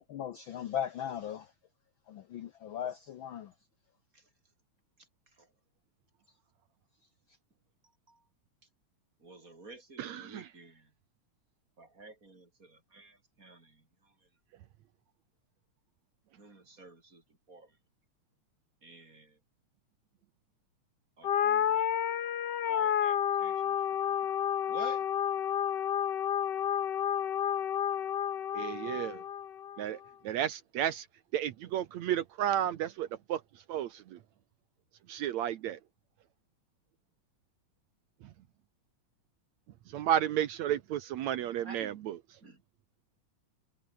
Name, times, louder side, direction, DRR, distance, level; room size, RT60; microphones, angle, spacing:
voice 1, 0.0-1.5 2.1-3.5, left 9 dB, 85° left, 1.1 m, -38 dB
voice 2, 9.2-10.9 11.8-14.1 16.4-17.2 17.5-17.7 18.8-19.4 21.2-21.9 22.6-23.7 24.1-24.2 24.7-25.0 41.6-41.9 42.4-42.6, right 3 dB, 25° right, 4.8 m, -51 dB
voice 3, 10.0-10.5 28.5-29.2 29.8-30.0 30.2-31.1 31.3-33.4 33.7-34.2 35.1-35.8 39.9-42.2, right 11 dB, 70° right, 2.2 m, -32 dB
sound 1, 21.2-29.8, left 9 dB, 55° left, 1.2 m, -30 dB
omnidirectional pair, 3.5 m